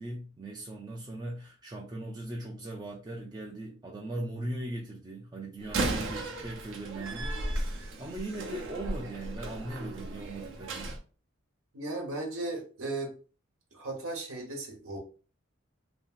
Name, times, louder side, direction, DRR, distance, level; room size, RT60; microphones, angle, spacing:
voice 1, 0.0-10.9, right 1 dB, 20° right, 0.4 m, -39 dB
Slam, 5.6-11.0, right 2 dB, 65° right, 0.6 m, -35 dB
voice 2, 11.7-13.1 13.7-15.0, right 2 dB, 90° right, 1.0 m, -36 dB
2.8 x 2.7 x 2.4 m
head